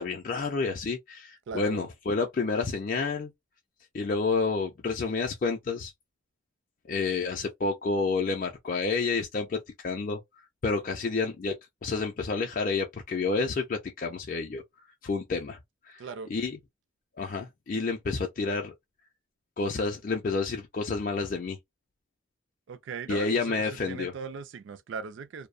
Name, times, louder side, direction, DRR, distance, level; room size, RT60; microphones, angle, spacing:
voice 1, 0.0-3.3 3.9-5.9 6.9-10.2 10.6-11.5 11.8-14.6 15.0-15.6 15.8-16.0 16.3-16.6 17.2-18.7 19.6-21.6 23.1-24.1, left 4 dB, 40° left, 0.4 m, -29 dB
voice 2, 1.5-1.8 16.0-16.3 22.7-25.5, right 5 dB, 60° right, 0.3 m, -39 dB
2.6 x 2.0 x 2.4 m
head